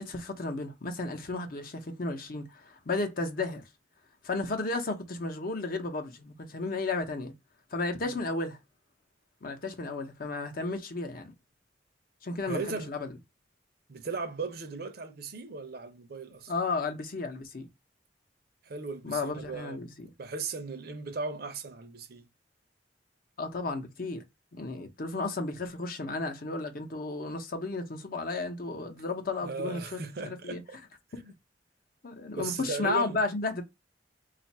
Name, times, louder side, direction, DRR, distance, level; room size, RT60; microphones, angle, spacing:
voice 1, 0.0-3.6 4.2-7.3 7.7-8.6 9.4-11.3 12.2-13.1 16.5-17.7 19.0-20.1 23.4-24.2 24.5-30.6 32.0-33.6, left 3 dB, 55° left, 0.7 m, -33 dB
voice 2, 12.5-12.9 13.9-16.5 18.6-19.8 20.2-22.3 29.4-30.8 31.2-31.3 32.4-33.2, right 4 dB, 60° right, 0.6 m, -37 dB
2.5 x 2.4 x 4.1 m
head